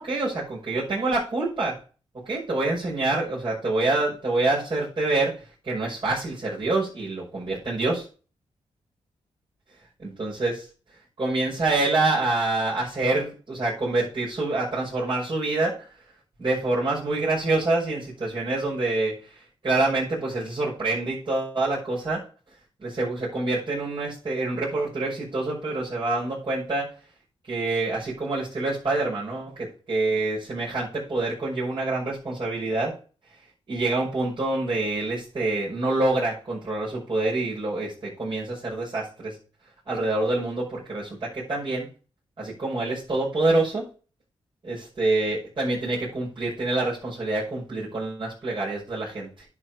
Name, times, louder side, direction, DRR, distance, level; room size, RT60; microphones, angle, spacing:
voice 1, 0.0-1.8 2.2-8.1 10.2-10.6 11.2-15.9 16.4-22.3 22.8-27.0 27.5-32.9 33.3-33.4 33.7-39.4 39.9-41.9 42.4-43.9 44.6-49.4, right 2 dB, 45° right, -7 dB, 6.1 m, -26 dB
10.5 x 5.0 x 6.0 m, 0.37 s
cardioid pair, 70°, 12 cm